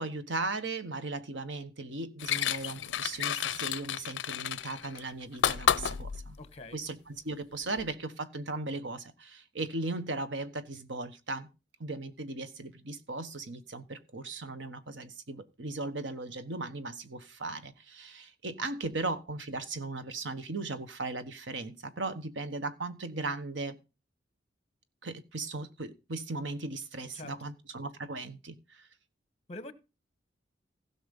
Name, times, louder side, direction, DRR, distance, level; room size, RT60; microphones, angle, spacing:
voice 1, 0.0-6.4 6.7-11.5 11.8-23.8 25.0-28.9, right 3 dB, 90° right, 1.3 m, -37 dB
sound 1, 2.2-6.4 7.8-7.9, left 9 dB, 75° left, 0.5 m, -31 dB
voice 2, 6.4-6.8 27.1-27.5 29.5-29.7, left 2 dB, 35° left, 1.2 m, -44 dB
16.0 x 6.1 x 5.3 m
head